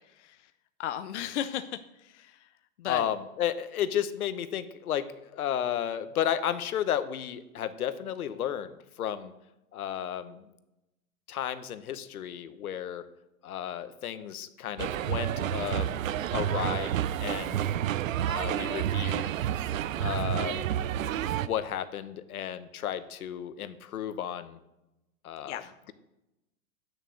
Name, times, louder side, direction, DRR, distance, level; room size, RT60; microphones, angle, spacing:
voice 1, 0.1-0.5 0.8-2.5 2.8-3.1 25.4-25.7, left 11 dB, 55° left, 10 dB, 0.5 m, -36 dB
voice 2, 2.9-9.3 9.7-10.5 11.3-13.0 13.4-16.0 16.3-16.9 17.2-17.6 18.2-19.3 20.0-20.6 21.4-24.6 25.2-25.6, left 10 dB, 85° left, 12 dB, 1.0 m, -33 dB
sound 1, 14.8-21.5, right 11 dB, 65° right, 0.5 m, -30 dB
9.0 x 6.6 x 6.4 m, 0.92 s
hypercardioid pair, 175°, 43 cm